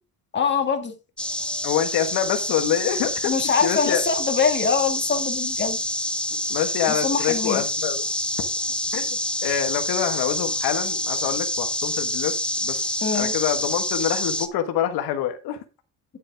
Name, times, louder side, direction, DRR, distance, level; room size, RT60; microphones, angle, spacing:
voice 1, 0.3-0.9 3.2-5.8 6.9-7.6 13.0-13.3, left 6 dB, 30° left, 2.0 m, -23 dB
sound 1, 1.2-14.5, left 1 dB, 5° left, 0.7 m, -27 dB
voice 2, 1.6-3.3 3.6-4.0 6.5-8.1 8.9-12.3 12.6-12.8 13.1-15.6, left 10 dB, 90° left, 1.5 m, -26 dB
9.9 x 7.5 x 3.5 m
cardioid pair, 150°, 37 cm